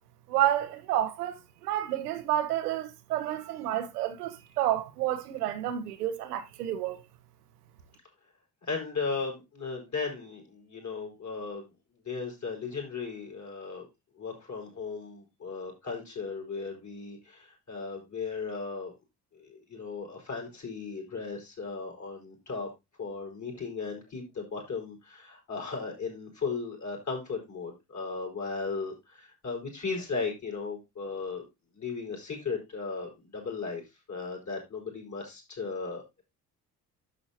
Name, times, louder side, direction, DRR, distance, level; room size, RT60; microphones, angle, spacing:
voice 1, 0.3-7.0, right 12 dB, 75° right, 1.0 m, -30 dB
voice 2, 8.6-11.7 12.0-13.9 14.2-18.9 19.3-22.7 23.0-31.5 31.7-33.8 34.1-36.2, left 4 dB, 35° left, 4.7 m, -36 dB
11.0 x 6.8 x 2.8 m
figure-of-eight pair, 45°, 47 cm